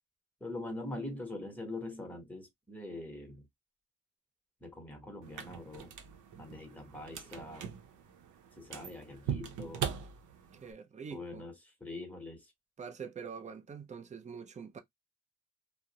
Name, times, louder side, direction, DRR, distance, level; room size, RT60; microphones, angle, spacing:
voice 1, 0.4-3.5 4.6-6.0 6.4-7.8 8.6-9.9 11.1-12.5, left 2 dB, 5° left, 1.1 m, -43 dB
sound 1, 5.2-10.7, right 8 dB, 75° right, 0.6 m, -41 dB
voice 2, 10.5-11.4 12.8-14.8, right 6 dB, 25° right, 0.5 m, -45 dB
2.4 x 2.0 x 2.8 m
cardioid pair, 90°, 30 cm